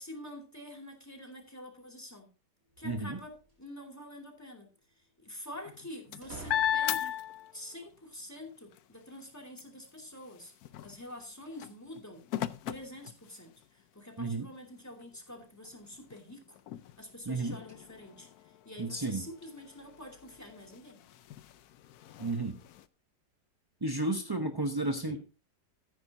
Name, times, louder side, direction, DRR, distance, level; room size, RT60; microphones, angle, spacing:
voice 1, 0.0-2.3 2.8-4.7 5.2-7.1 7.5-10.5 10.8-12.3 12.7-16.6 17.0-18.3 18.6-21.0 25.1-25.2, left 1 dB, 10° left, 2 dB, 2.5 m, -47 dB
sound 1, 2.7-3.7 6.2-7.3, right 2 dB, 50° right, 3.2 m, -49 dB
voice 2, 2.8-3.2 14.2-14.5 17.3-17.6 18.8-19.2 22.2-22.5 23.8-25.2, right 2 dB, 25° right, 5 dB, 0.4 m, -32 dB
sound 2, 5.6-7.9 8.4-13.8 14.4-14.5 14.9-22.9, left 11 dB, 70° left, 1.0 m, -39 dB
14.0 x 9.6 x 2.7 m, 0.31 s
omnidirectional pair, 1.9 m